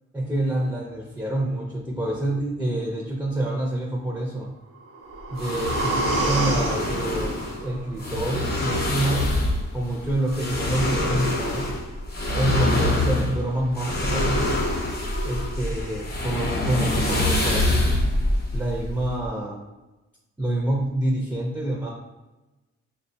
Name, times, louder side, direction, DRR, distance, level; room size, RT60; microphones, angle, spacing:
voice 1, 0.1-4.5 5.3-9.3 9.7-11.7 12.3-14.6 15.2-18.2 18.5-19.6 20.4-21.9, right 1 dB, 5° right, -2 dB, 0.4 m, -27 dB
sound 1, 4.7-8.7 9.1-9.2, right 3 dB, 55° right, 0.6 m, -30 dB
sound 2, 5.4-19.3, left 1 dB, 35° left, 0.8 m, -25 dB
6.3 x 2.2 x 2.6 m, 1.1 s
wide cardioid pair, 140°, 29 cm